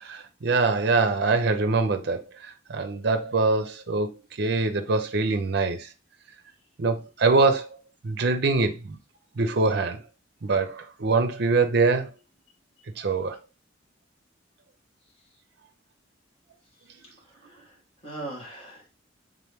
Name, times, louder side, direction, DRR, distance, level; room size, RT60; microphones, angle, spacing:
voice 1, 0.0-2.2 2.7-4.1 4.4-5.9 6.8-7.7 8.0-9.0 9.4-10.0 10.4-12.1 13.0-13.4, right 3 dB, 55° right, 0.6 m, -23 dB
voice 2, 17.3-17.7 18.0-18.9, right 2 dB, 30° left, 1.7 m, -39 dB
3.6 x 3.0 x 3.4 m
head